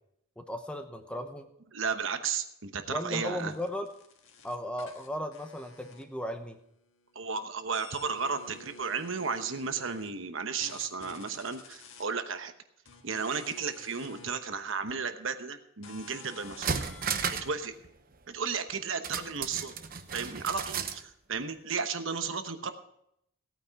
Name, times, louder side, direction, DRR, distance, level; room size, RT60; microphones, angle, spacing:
voice 1, 0.4-1.5 2.9-3.9 4.4-6.6, left 1 dB, 5° left, 6 dB, 0.8 m, -36 dB
voice 2, 1.7-3.5 7.1-12.5 13.0-16.8 17.3-17.7 18.3-19.7 20.1-22.7, right 5 dB, 65° right, 8 dB, 1.0 m, -34 dB
sound 1, 3.4-6.5 6.8-10.1 10.6-12.0 12.8-14.3 14.9-15.0 15.8-17.2, left 3 dB, 65° left, 1.6 m, -50 dB
sound 2, 16.0-16.1 16.4-17.6 17.8-17.9 19.0-21.0 21.3-21.4, right 6 dB, 40° right, 0.9 m, -34 dB
17.0 x 9.1 x 4.7 m, 0.74 s
head